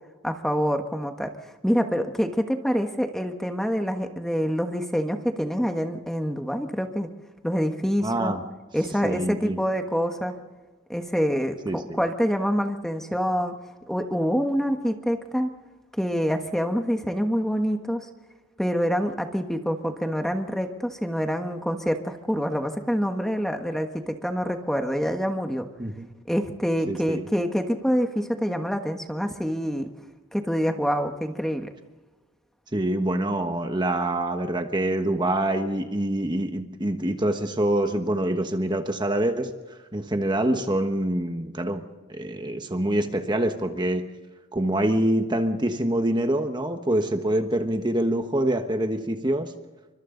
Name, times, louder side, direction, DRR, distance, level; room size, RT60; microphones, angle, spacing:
voice 1, 0.2-1.3 1.6-7.1 7.4-8.3 8.7-10.4 10.9-13.5 13.9-15.5 16.0-18.1 18.6-25.7 26.3-29.9 30.3-31.7, equal, ahead, 5 dB, 1.4 m, -26 dB
voice 2, 8.0-8.4 9.0-9.6 11.6-12.0 25.8-26.1 26.9-27.2 32.7-39.5 39.9-44.1 44.5-49.5, right 1 dB, 20° right, 6 dB, 1.3 m, -25 dB
29.5 x 25.0 x 4.0 m, 1.3 s
head